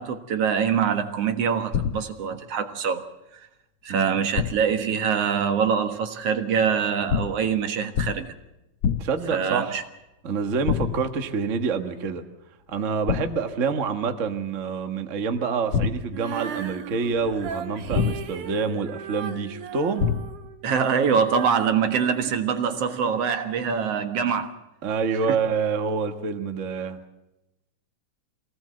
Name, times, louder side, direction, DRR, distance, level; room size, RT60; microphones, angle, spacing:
voice 1, 0.0-3.1 3.8-8.3 9.3-9.8 20.6-24.5 25.3-25.4, right 6 dB, 55° right, 2.4 m, -24 dB
sound 1, 1.7-2.3 4.3-4.8 7.1-7.5 7.9-8.4 8.8-9.3 10.7-11.2 13.1-13.6 15.7-16.4 17.9-18.5 20.0-20.6, left 7 dB, 70° left, 1.2 m, -27 dB
voice 2, 9.0-9.8 10.2-12.2 12.7-20.1 24.8-27.0, right 5 dB, 35° right, 1.3 m, -27 dB
Female singing, 16.1-23.2, right 7 dB, 80° right, 3.0 m, -37 dB
24.5 x 18.0 x 7.8 m
omnidirectional pair, 3.5 m